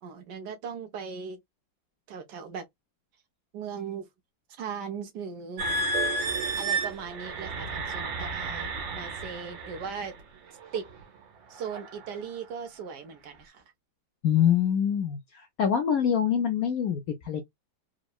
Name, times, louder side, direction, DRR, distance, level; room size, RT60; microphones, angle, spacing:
voice 1, 0.0-1.4 2.1-2.6 3.5-4.1 4.5-5.6 6.6-10.1 10.7-10.8 11.5-13.6, right 6 dB, 70° right, 1.2 m, -38 dB
sound 1, 5.6-10.1 10.7-11.0 11.6-11.9, right 2 dB, 90° right, 1.6 m, -31 dB
voice 2, 14.2-17.0 17.2-17.4, left 8 dB, 75° left, 0.8 m, -25 dB
3.6 x 2.0 x 2.2 m
omnidirectional pair, 2.0 m